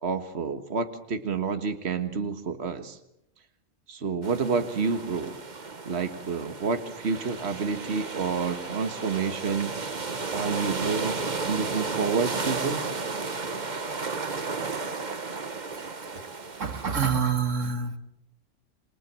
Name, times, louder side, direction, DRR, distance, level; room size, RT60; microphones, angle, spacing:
voice 1, 0.0-3.0 3.9-5.3 5.9-9.8 10.3-11.2 11.5-12.9, right 5 dB, 55° right, 8 dB, 1.8 m, -29 dB
sound 1, 4.2-17.0, right 4 dB, 40° right, 1.4 m, -33 dB
voice 2, 16.6-18.0, right 6 dB, 80° right, 9 dB, 2.1 m, -27 dB
28.5 x 22.5 x 7.6 m, 0.77 s
omnidirectional pair, 1.3 m